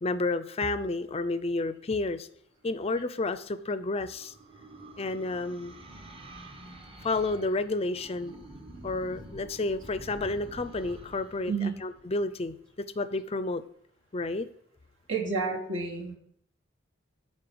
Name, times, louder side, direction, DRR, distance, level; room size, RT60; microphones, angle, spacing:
voice 1, 0.0-2.3 2.6-4.3 5.0-5.8 7.0-8.3 8.8-11.5 11.8-12.5 13.0-13.6 14.1-14.5, left 2 dB, 30° left, 12 dB, 0.5 m, -30 dB
sound 1, 3.4-12.8, right 1 dB, 30° right, 0.9 m, -48 dB
voice 2, 11.5-11.8 15.1-16.2, right 4 dB, 70° right, -2 dB, 2.8 m, -30 dB
10.5 x 4.3 x 7.8 m, 0.69 s
head